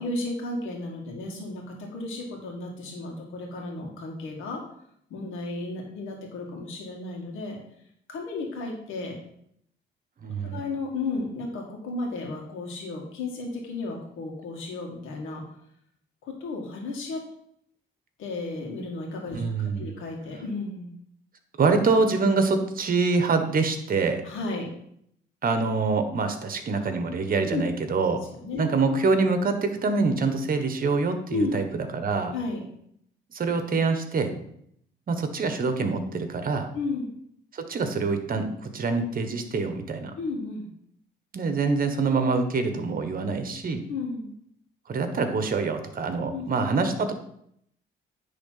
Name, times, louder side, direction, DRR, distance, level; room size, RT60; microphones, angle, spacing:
voice 1, 0.0-1.6 1.9-4.6 5.1-7.6 8.1-9.2 10.5-15.4 16.2-17.2 18.2-20.9 24.2-24.7 27.5-27.6 28.3-28.6 31.3-31.5 32.3-32.7 36.7-37.1 40.2-40.7 43.9-44.3 46.3-46.4, left 3 dB, 90° left, 0 dB, 2.1 m, -33 dB
voice 2, 10.2-10.6 19.3-19.9 21.6-24.2 25.4-28.2 28.6-32.3 33.3-34.3 35.1-36.7 37.5-40.1 41.3-43.8 44.9-47.1, right 4 dB, 45° right, 7 dB, 1.3 m, -25 dB
9.8 x 3.8 x 5.8 m, 0.71 s
cardioid pair, 90°, 20 cm